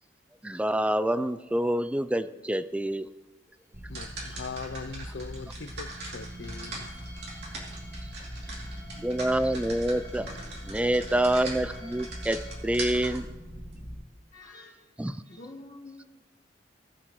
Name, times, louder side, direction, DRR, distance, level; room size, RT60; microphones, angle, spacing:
voice 1, 0.4-3.1 9.0-10.3 10.7-13.3 15.0-15.2, right 1 dB, 5° right, 0.3 m, -27 dB
sound 1, 2.7-2.8 3.0-3.1 3.5-12.6, left 2 dB, 10° left, 3.2 m, -53 dB
sound 2, 3.7-14.0, right 1 dB, 60° right, 2.9 m, -39 dB
voice 2, 3.9-6.9, left 4 dB, 70° left, 0.5 m, -40 dB
voice 3, 14.3-14.9 15.2-16.2, left 2 dB, 45° left, 1.5 m, -47 dB
19.5 x 7.5 x 3.1 m
head